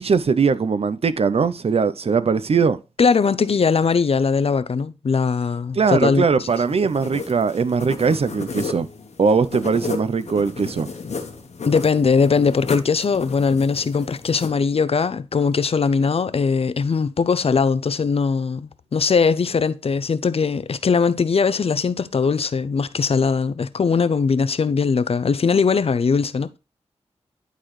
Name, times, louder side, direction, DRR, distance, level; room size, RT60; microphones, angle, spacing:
voice 1, 0.0-2.8 5.7-8.9 9.2-10.9, right 5 dB, 60° right, 0.6 m, -20 dB
voice 2, 3.0-6.5 11.7-26.6, left 5 dB, 55° left, 0.5 m, -20 dB
sound 1, 6.5-14.5, left 4 dB, 70° left, 1.3 m, -33 dB
11.0 x 4.0 x 3.2 m
cardioid pair, 65°, 12 cm